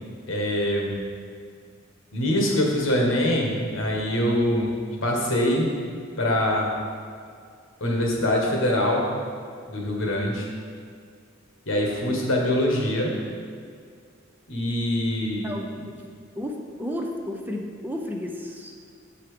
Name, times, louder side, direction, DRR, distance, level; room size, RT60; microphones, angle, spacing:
voice 1, 0.3-1.0 2.1-4.7 5.0-5.7 6.2-6.7 7.8-9.1 9.7-10.5 11.7-13.1 14.5-15.9, left 1 dB, 70° left, -1 dB, 1.5 m, -24 dB
voice 2, 15.4-16.0 16.4-18.7, left 1 dB, 10° right, 1 dB, 0.5 m, -33 dB
7.0 x 5.9 x 5.0 m, 2.1 s
head